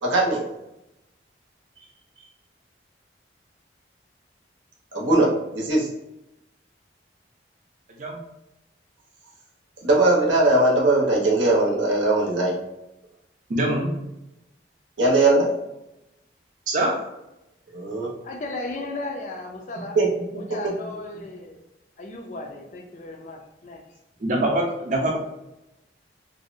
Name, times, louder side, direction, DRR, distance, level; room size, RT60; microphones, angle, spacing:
voice 1, 0.0-0.4 4.9-5.9 9.8-12.5 15.0-15.5 17.7-18.1 20.0-20.1 20.3-20.4, right 2 dB, 90° right, -3 dB, 0.8 m, -20 dB
voice 2, 13.5-13.9 16.7-16.9 24.2-25.2, right 1 dB, 45° right, -1 dB, 0.5 m, -23 dB
voice 3, 18.2-20.0 20.3-21.6 22.0-23.8, left 2 dB, 40° left, 2 dB, 0.3 m, -35 dB
2.6 x 2.0 x 2.5 m, 0.90 s
head